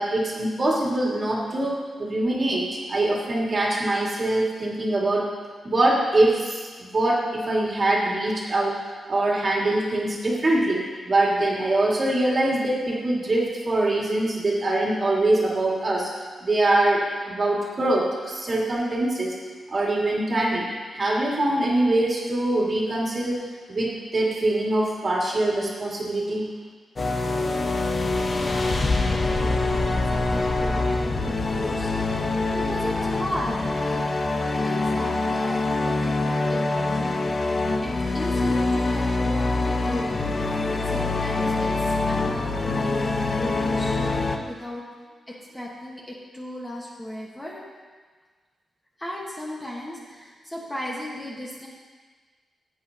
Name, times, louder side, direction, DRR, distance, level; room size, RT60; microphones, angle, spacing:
voice 1, 0.0-5.3 5.6-8.8 9.1-16.1 16.4-19.4 19.7-20.7 20.9-23.4 23.7-26.5, right 1 dB, 35° right, -3 dB, 2.1 m, -23 dB
sound 1, 27.0-44.4, left 3 dB, 30° left, 0.7 m, -24 dB
voice 2, 28.3-40.1 40.8-44.8 45.3-47.6 49.0-51.7, left 1 dB, 10° left, -4 dB, 1.3 m, -36 dB
15.5 x 8.8 x 2.8 m, 1.5 s
wide cardioid pair, 150°, 0 cm